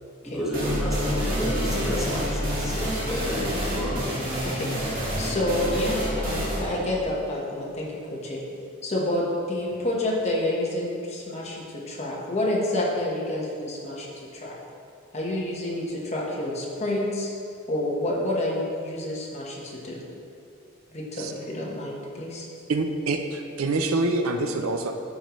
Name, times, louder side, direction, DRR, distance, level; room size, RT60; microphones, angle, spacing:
voice 1, 0.2-4.0 5.8-5.9, left 1 dB, ahead, -8 dB, 1.6 m, -31 dB
sound 1, 0.5-8.0, equal, 40° right, 1.7 m, -28 dB
voice 2, 4.4-5.9 6.2-8.4 8.8-14.1 14.3-14.6 15.1-17.3 17.7-20.0 20.9-22.5, left 1 dB, 30° left, -4 dB, 1.3 m, -29 dB
voice 3, 22.7-24.9, right 2 dB, 80° right, 5 dB, 0.6 m, -26 dB
12.0 x 5.3 x 3.1 m, 2.5 s
head